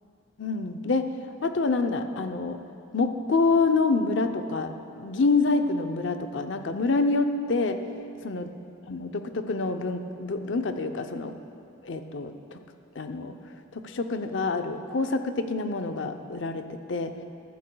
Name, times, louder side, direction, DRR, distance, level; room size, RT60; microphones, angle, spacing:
voice 1, 0.4-1.1 1.4-2.6 2.9-4.7 5.0-7.8 8.2-8.5 8.9-11.3 11.8-12.3 13.0-13.4 13.8-17.1, left 3 dB, 70° left, 7 dB, 0.6 m, -26 dB
15.0 x 12.5 x 2.3 m, 2.6 s
head